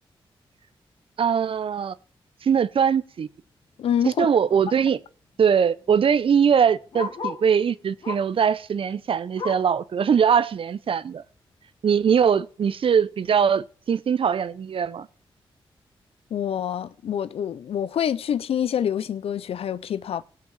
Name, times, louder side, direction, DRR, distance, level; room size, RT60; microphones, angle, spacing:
voice 1, 1.2-1.9 2.4-3.3 4.0-5.0 5.4-11.2 11.8-15.1, right 7 dB, 65° right, 0.8 m, -21 dB
voice 2, 3.8-4.3 16.3-20.2, left 9 dB, 80° left, 0.7 m, -26 dB
Bark, 4.8-7.5 8.0-8.4 8.8-9.8 10.3-10.4 10.7-10.8 11.5-11.6, left 4 dB, 65° left, 2.3 m, -37 dB
17.0 x 5.8 x 7.3 m
cardioid pair, 60°, 10 cm